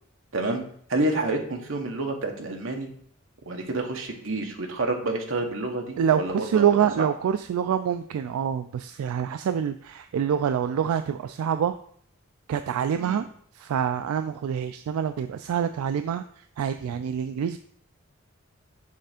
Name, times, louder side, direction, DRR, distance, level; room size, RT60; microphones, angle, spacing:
voice 1, 0.9-2.9 3.5-6.7 7.0-7.1 13.0-13.2, right 2 dB, 65° right, 3 dB, 1.0 m, -28 dB
voice 2, 6.0-11.8 12.5-13.3 13.6-16.2 16.6-17.6, right 8 dB, 80° right, 10 dB, 0.3 m, -26 dB
6.8 x 3.3 x 5.0 m, 0.62 s
head